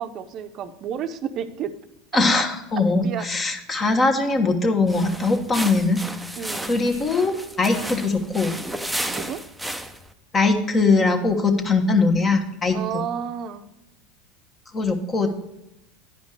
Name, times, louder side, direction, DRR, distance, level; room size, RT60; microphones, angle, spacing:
voice 1, 0.0-1.7 3.0-3.3 6.4-6.8 9.1-9.4 12.7-13.7, right 8 dB, 45° right, 10 dB, 0.7 m, -31 dB
voice 2, 2.1-6.0 6.7-8.6 10.3-12.8 14.7-15.3, left 3 dB, 30° left, 5 dB, 1.4 m, -21 dB
sound 1, 4.8-10.1, right 1 dB, 5° right, 0.7 m, -33 dB
9.9 x 5.1 x 6.4 m, 0.89 s
hypercardioid pair, 100°, 0 cm